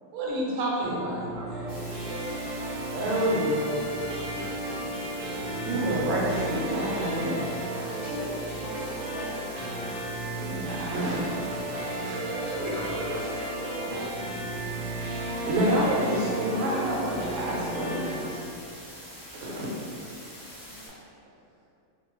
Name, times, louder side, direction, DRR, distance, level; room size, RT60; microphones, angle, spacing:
voice 1, 0.1-2.4 2.9-3.9 5.3-7.4 7.8-8.7 10.4-11.6 12.0-13.8 15.5-18.5 19.3-19.7, equal, 80° right, -4 dB, 1.0 m, -29 dB
sound 1, 0.8-18.3, right 2 dB, 65° right, 0.7 m, -34 dB
sound 2, 1.7-20.9, equal, 30° left, 0.4 m, -45 dB
voice 2, 3.8-5.0 12.3-13.1, left 1 dB, 65° left, -7 dB, 0.9 m, -47 dB
voice 3, 7.9-8.2 8.5-9.4 13.8-14.7 20.7-20.8, left 1 dB, 90° left, -4 dB, 1.1 m, -44 dB
2.6 x 2.1 x 2.9 m, 2.5 s
omnidirectional pair, 1.5 m